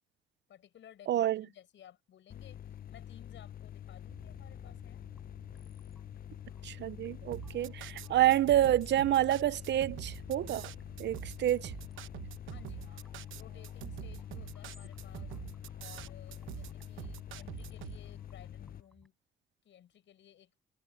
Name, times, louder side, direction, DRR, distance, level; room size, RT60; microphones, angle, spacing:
voice 1, 0.5-5.0 12.5-13.1 13.4-15.4 15.8-19.1 19.6-20.5, left 10 dB, 70° left, 7.5 m, -57 dB
voice 2, 1.1-1.4 6.6-10.7 11.0-11.7, right 12 dB, 60° right, 0.6 m, -28 dB
sound 1, 2.3-18.8, left 10 dB, 45° left, 0.6 m, -46 dB
sound 2, 4.1-19.1, equal, ahead, 4.4 m, -58 dB
sound 3, 7.3-18.0, right 14 dB, 85° right, 0.9 m, -45 dB
cardioid pair, 90°, 20 cm